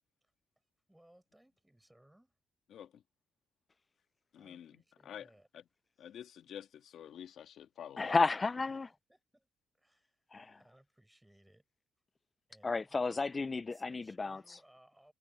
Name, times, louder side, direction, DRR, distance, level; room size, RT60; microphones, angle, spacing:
voice 1, 0.9-2.3 4.4-5.5 8.9-9.5 9.7-11.6 12.5-13.4 13.7-15.1, right 1 dB, 5° right, 6.5 m, -65 dB
voice 2, 2.7-3.0 4.3-5.3 6.0-8.2, left 9 dB, 70° left, 1.9 m, -49 dB
voice 3, 8.0-8.9 10.3-10.6 12.6-14.4, left 3 dB, 25° left, 0.3 m, -32 dB
cardioid pair, 90°, 0 cm